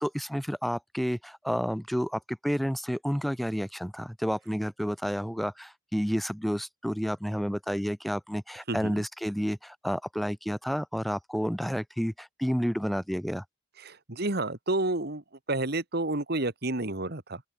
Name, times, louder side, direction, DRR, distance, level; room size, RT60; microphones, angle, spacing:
voice 1, 0.0-13.4, equal, ahead, 2.3 m, -30 dB
voice 2, 8.7-9.0 13.8-15.2 15.5-17.4, right 2 dB, 55° right, 2.4 m, -30 dB
open air
head